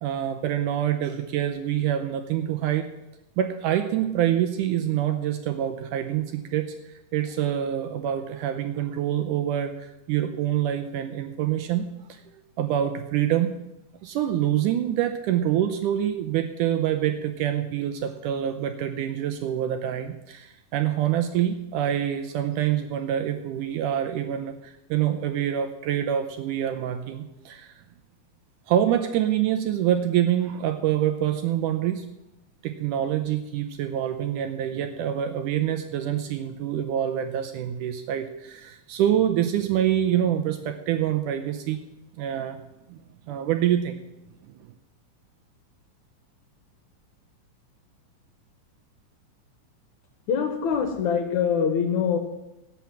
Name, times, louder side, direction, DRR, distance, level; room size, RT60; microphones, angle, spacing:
voice 1, 0.0-2.9 3.4-12.2 12.6-13.6 14.0-27.7 28.7-32.1 32.6-41.8 42.2-42.6 42.9-44.0, right 10 dB, 75° right, 7 dB, 2.0 m, -26 dB
voice 2, 50.3-52.2, left 7 dB, 65° left, 6 dB, 2.1 m, -24 dB
17.0 x 5.9 x 7.3 m, 0.92 s
omnidirectional pair, 4.1 m